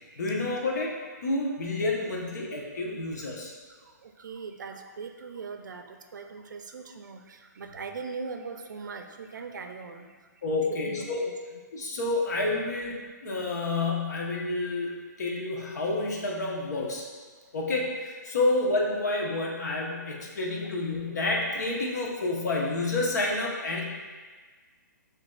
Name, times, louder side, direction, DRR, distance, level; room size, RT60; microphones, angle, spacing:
voice 1, 0.2-0.9 1.2-3.5 10.4-11.2 11.7-13.0 13.2-17.0 17.5-23.9, left 2 dB, 65° left, -1 dB, 0.9 m, -29 dB
voice 2, 3.7-10.2 10.7-11.3, right 4 dB, 80° right, 6 dB, 0.4 m, -40 dB
6.2 x 2.7 x 2.3 m, 1.4 s
hypercardioid pair, 165°, 10 cm